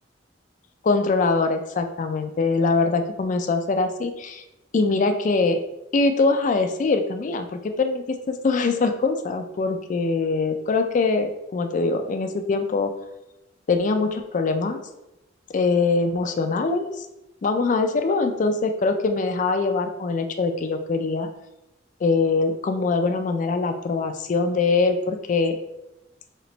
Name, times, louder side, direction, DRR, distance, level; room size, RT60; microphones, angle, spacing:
voice 1, 0.8-4.4 4.7-5.6 5.9-12.9 13.7-14.8 15.5-17.1 17.4-21.3 22.0-25.6, left 3 dB, 40° left, 7 dB, 0.3 m, -23 dB
3.2 x 2.9 x 3.9 m, 0.95 s
head